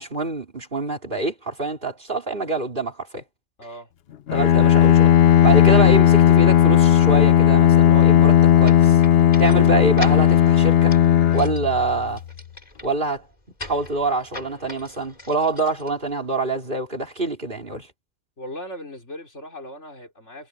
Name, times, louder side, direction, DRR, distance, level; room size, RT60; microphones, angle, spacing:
voice 1, 0.0-3.2 4.3-5.2 5.4-9.0 9.4-10.9 11.3-12.2 12.8-13.3 13.6-17.9, right 3 dB, 50° right, 4.2 m, -25 dB
voice 2, 3.6-3.9 9.4-9.7 18.4-20.5, equal, 80° left, 5.4 m, -38 dB
Bowed string instrument, 4.3-12.3, left 10 dB, 65° left, 0.9 m, -15 dB
sound 1, 8.6-16.5, left 1 dB, 35° left, 3.5 m, -40 dB
omnidirectional pair, 1.2 m